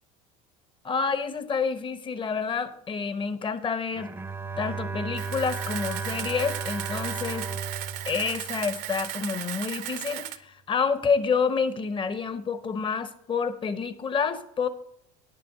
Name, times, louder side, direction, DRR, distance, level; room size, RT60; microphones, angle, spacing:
voice 1, 0.8-4.1 4.6-7.5 8.1-14.7, left 5 dB, 30° left, 11 dB, 1.0 m, -28 dB
Bowed string instrument, 3.9-9.3, right 4 dB, 10° right, 0.7 m, -35 dB
Camera, 5.1-10.4, right 13 dB, 60° right, 0.7 m, -36 dB
9.9 x 7.0 x 5.0 m, 0.70 s
hypercardioid pair, 80°, 18 cm